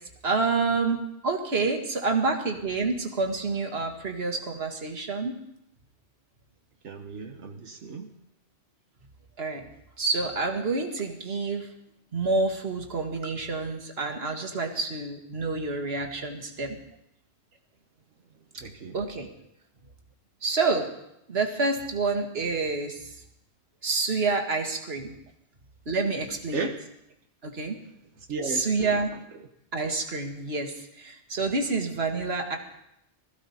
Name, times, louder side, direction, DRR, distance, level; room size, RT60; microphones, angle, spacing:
voice 1, 0.2-5.3 9.4-9.6 10.0-11.7 12.1-16.8 18.9-19.3 20.4-20.9 21.3-23.1 23.8-25.1 25.9-26.7 27.4-27.8 28.4-29.1 29.7-32.6, right 3 dB, 60° right, 3 dB, 2.0 m, -28 dB
voice 2, 6.8-8.1 18.5-19.0 26.5-26.7 28.3-28.9, right 4 dB, 90° right, 3 dB, 1.5 m, -34 dB
21.0 x 15.0 x 4.3 m, 0.80 s
omnidirectional pair, 1.2 m